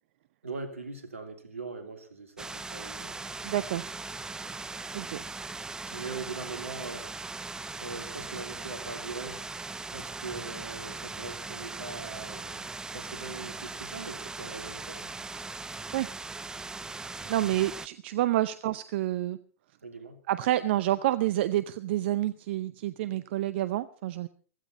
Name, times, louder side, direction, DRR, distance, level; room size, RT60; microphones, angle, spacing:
voice 1, 0.4-3.3 5.9-7.1 7.8-9.4 9.9-15.1 18.3-18.4 19.8-20.2, right 4 dB, 80° right, 7 dB, 2.8 m, -41 dB
sound 1, 2.4-17.9, right 3 dB, 10° right, 0.7 m, -39 dB
voice 2, 3.4-3.8 4.9-5.2 15.9-16.1 17.3-19.4 20.3-24.3, right 14 dB, 55° right, 15 dB, 0.7 m, -28 dB
16.0 x 15.5 x 4.2 m, 0.41 s
figure-of-eight pair, 100°, 7 cm